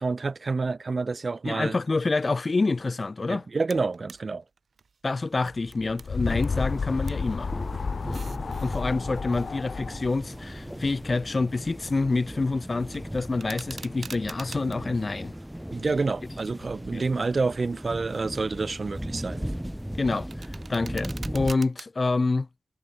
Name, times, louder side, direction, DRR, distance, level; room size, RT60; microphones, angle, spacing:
voice 1, 0.0-1.7 3.3-4.4 15.7-19.5, right 4 dB, 50° right, 0.4 m, -28 dB
voice 2, 1.4-3.5 5.0-7.5 8.6-15.3 16.9-17.0 20.0-20.3 20.7-22.5, left 3 dB, 40° left, 0.5 m, -27 dB
sound 1, 3.7-4.2 4.6-6.6 6.8-7.3 7.9-8.8 9.5-11.6 11.9-12.3 12.7-14.8 15.3-16.3 16.8-17.1 17.6-18.1 18.5-21.9, right 5 dB, 75° right, 4.3 m, -47 dB
sound 2, 5.6-11.2, left 5 dB, 75° left, 1.0 m, -32 dB
sound 3, 6.2-21.5, equal, 5° right, 2.1 m, -37 dB
wide cardioid pair, 120°, 0 cm